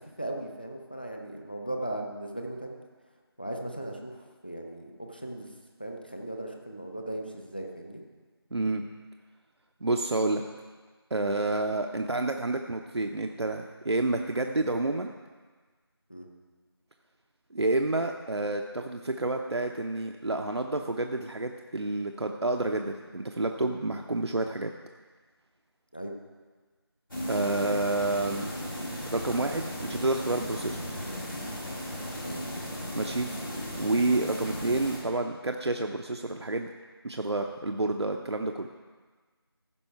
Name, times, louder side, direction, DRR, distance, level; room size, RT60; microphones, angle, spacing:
voice 1, 0.0-2.8 3.4-5.5 5.8-8.0 16.1-16.3 25.9-26.1 32.1-32.7, right 1 dB, 20° left, 2 dB, 0.6 m, -38 dB
voice 2, 8.5-8.8 9.8-10.4 11.1-15.1 17.5-24.7 27.3-28.5 29.1-31.0 32.9-33.3 33.8-36.7 37.0-38.8, right 2 dB, 80° right, 4 dB, 0.7 m, -29 dB
sound 1, 27.1-35.0, equal, 55° left, 2.9 m, -36 dB
15.0 x 5.5 x 4.6 m, 1.4 s
figure-of-eight pair, 175°, 14 cm